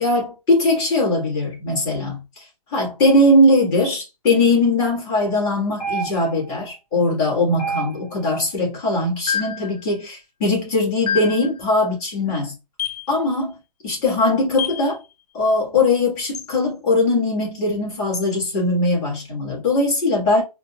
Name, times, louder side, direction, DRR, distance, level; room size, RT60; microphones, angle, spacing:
voice 1, 0.0-12.5 13.1-13.5 13.8-15.0 15.3-20.4, left 2 dB, 20° left, 1.5 m, -20 dB
sound 1, 5.8-6.5 7.6-8.3 9.3-9.7 11.1-11.5 12.8-13.1 14.6-14.9 16.3-16.5 18.1-18.3, left 3 dB, 75° left, 0.9 m, -27 dB
4.0 x 2.1 x 2.3 m
hypercardioid pair, 155°, 20 cm